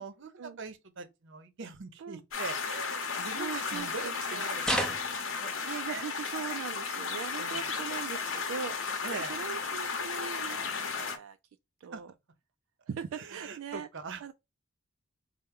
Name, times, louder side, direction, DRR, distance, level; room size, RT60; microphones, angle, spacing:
voice 1, 0.0-5.6 5.9-6.1 7.4-7.7 9.0-9.4 11.9-12.0 13.1-14.3, right 4 dB, 60° right, 0.7 m, -42 dB
sound 1, 2.3-11.2, left 5 dB, 70° left, 0.8 m, -34 dB
voice 2, 3.3-4.6 5.5-11.4 11.8-12.1 12.9-13.9 14.2-14.3, right 7 dB, 85° right, 0.3 m, -40 dB
sound 2, 4.6-5.5 7.0-7.7 9.0-9.2 10.0-10.1, equal, 5° left, 0.5 m, -34 dB
4.3 x 2.1 x 3.5 m
head